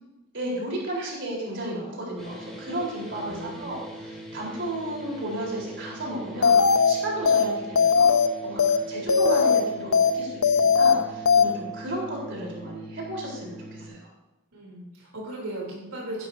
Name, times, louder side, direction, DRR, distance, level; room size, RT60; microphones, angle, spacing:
voice 1, 0.3-6.6 6.9-8.1 8.4-14.0, right 1 dB, 55° right, -3 dB, 4.1 m, -33 dB
sound 1, 2.2-13.9, right 1 dB, ahead, 3.0 m, -42 dB
voice 2, 3.2-3.8 14.5-16.3, right 1 dB, 80° right, -3 dB, 3.4 m, -37 dB
sound 2, 6.4-6.9 7.3-7.4 7.8-8.3 8.6-8.8 9.1-9.6 9.9-10.1 10.4-10.9 11.3-11.4, left 6 dB, 75° left, 0.7 m, -18 dB
15.5 x 12.0 x 2.8 m, 1.0 s
head